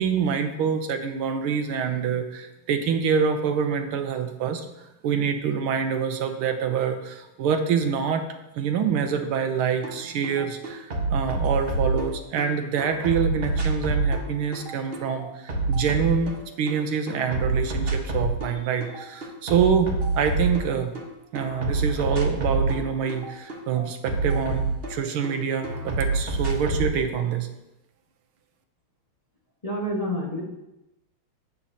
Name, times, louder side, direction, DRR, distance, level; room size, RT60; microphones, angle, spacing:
voice 1, 0.0-4.6 5.0-8.2 8.5-20.9 21.3-27.5, right 7 dB, 80° right, 6 dB, 1.7 m, -26 dB
sound 1, 9.8-10.0 10.2-12.5 12.8-16.8 17.1-18.5 18.8-21.1 21.4-25.3 25.6-26.9, right 3 dB, 35° right, 1.2 m, -27 dB
voice 2, 29.6-30.4, equal, 20° left, -5 dB, 1.4 m, -28 dB
11.5 x 8.7 x 2.8 m, 0.91 s
omnidirectional pair, 2.3 m